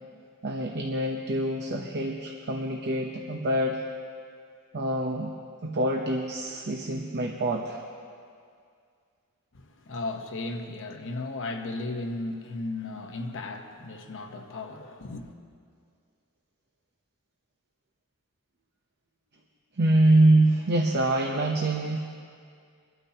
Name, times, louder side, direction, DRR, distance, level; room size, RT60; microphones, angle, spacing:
voice 1, 0.4-3.8 4.7-5.3 5.6-7.8 19.8-22.0, right 1 dB, 50° right, 1 dB, 0.8 m, -25 dB
voice 2, 9.5-15.3, left 2 dB, 60° left, 4 dB, 1.0 m, -35 dB
23.5 x 12.5 x 2.9 m, 2.2 s
head